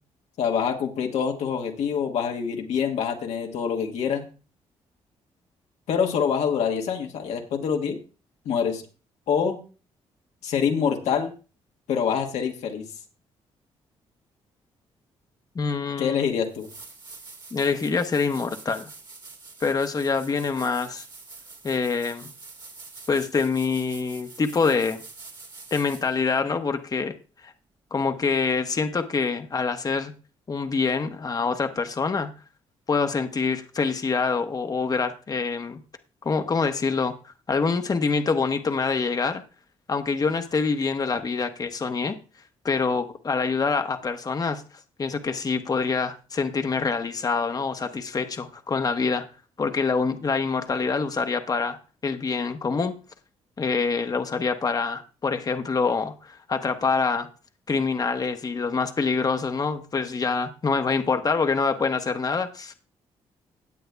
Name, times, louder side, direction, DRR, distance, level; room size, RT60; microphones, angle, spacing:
voice 1, 0.4-4.3 5.9-8.0 8.4-8.8 9.3-9.6 10.4-11.3 11.9-12.9 16.0-16.7, left 7 dB, 80° left, 3 dB, 1.3 m, -25 dB
voice 2, 15.5-16.2 17.5-18.9 19.6-21.0 21.6-22.3 23.1-25.0 25.7-27.1 27.4-27.5 27.9-30.1 30.5-32.3 32.9-35.8 36.2-37.2 37.5-39.4 39.9-42.2 42.6-44.6 45.0-49.2 49.6-51.8 52.0-52.9 53.6-57.3 57.7-62.7, left 4 dB, 35° left, 6 dB, 0.9 m, -25 dB
sound 1, 16.0-16.1 16.5-26.2 29.0-29.1, right 4 dB, 40° right, 2.0 m, -46 dB
17.5 x 7.7 x 2.2 m, 0.35 s
cardioid pair, 80°, 11 cm